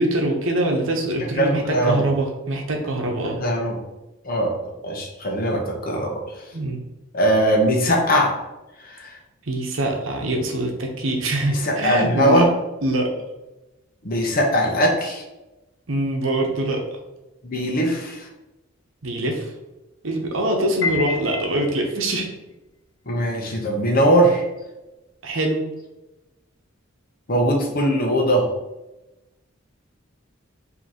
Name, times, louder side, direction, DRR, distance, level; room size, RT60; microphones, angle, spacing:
voice 1, 0.0-3.4 6.5-6.8 9.5-12.5 12.8-13.1 15.9-16.8 19.0-19.5 20.0-22.3 25.2-25.6, right 1 dB, 70° right, 2 dB, 0.9 m, -23 dB
voice 2, 1.2-2.1 3.4-3.8 4.2-4.5 4.8-6.2 7.1-8.3 8.8-9.1 11.5-12.5 14.0-15.2 17.4-18.3 23.1-24.5 27.3-28.5, equal, 45° left, 0 dB, 0.8 m, -20 dB
Piano, 20.8-22.1, left 5 dB, 80° left, 0.8 m, -28 dB
5.1 x 2.9 x 2.9 m, 1.0 s
head